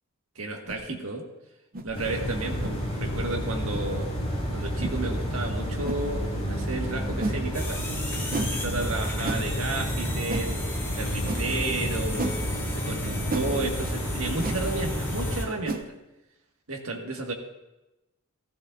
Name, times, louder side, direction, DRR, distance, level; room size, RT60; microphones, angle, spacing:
voice 1, 0.4-1.2 1.8-4.1 4.5-10.5 10.9-12.4 12.7-15.9 16.7-17.3, right 2 dB, 70° right, 1 dB, 1.8 m, -32 dB
sound 1, 0.7-0.8 1.7-1.9 2.6-2.8 3.7-3.8 4.8-5.0 5.8-6.0 7.2-7.4 8.3-8.5 9.2-9.4 10.3-10.5 11.3-11.4 12.2-12.4 13.3-13.5 14.4-14.6 15.6-15.9, right 2 dB, 40° right, 0.8 m, -31 dB
sound 2, 1.9-15.4, equal, 30° left, 4.3 m, -30 dB
sound 3, 7.5-15.5, left 2 dB, 10° left, 2.3 m, -38 dB
16.5 x 15.0 x 2.6 m, 0.99 s
head